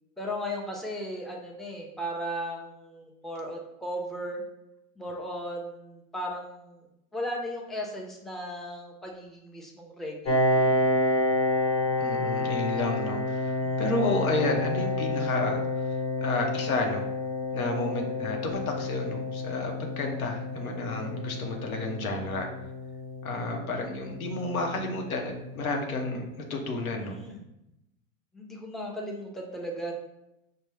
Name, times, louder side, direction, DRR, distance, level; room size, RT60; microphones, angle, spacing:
voice 1, 0.2-4.4 5.0-6.9 7.1-10.9 13.6-13.8 27.0-27.4 28.3-29.9, equal, ahead, -2 dB, 0.6 m, -36 dB
Piano, 10.2-25.6, left 2 dB, 65° left, 1.2 m, -29 dB
voice 2, 12.0-15.6 16.2-17.0 17.5-22.5 23.2-27.2, left 2 dB, 90° left, 2 dB, 0.9 m, -31 dB
5.3 x 2.2 x 3.2 m, 0.87 s
hypercardioid pair, 100°, 41 cm